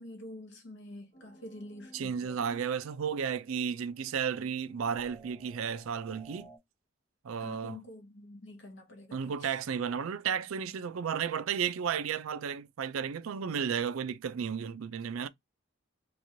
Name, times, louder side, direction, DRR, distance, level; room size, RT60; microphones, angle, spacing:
voice 1, 0.0-2.4 7.4-9.6, left 1 dB, 65° left, 0.7 m, -47 dB
sound 1, 1.1-6.6, right 1 dB, 30° left, 1.0 m, -55 dB
voice 2, 1.9-6.5 7.2-7.8 9.1-15.3, right 7 dB, 85° right, 0.4 m, -33 dB
3.0 x 2.4 x 2.6 m
head